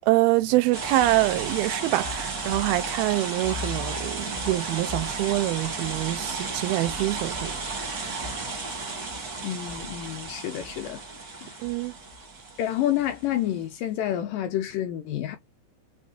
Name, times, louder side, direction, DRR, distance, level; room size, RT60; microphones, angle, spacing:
voice 1, 0.1-8.4 11.6-11.9, right 17 dB, 85° right, 2.4 m, -25 dB
sound 1, 0.7-13.3, right 3 dB, 70° right, 0.9 m, -33 dB
voice 2, 9.4-11.0 11.3-11.6 12.6-15.4, left 12 dB, 80° left, 2.0 m, -29 dB
6.1 x 2.1 x 2.6 m
omnidirectional pair, 4.3 m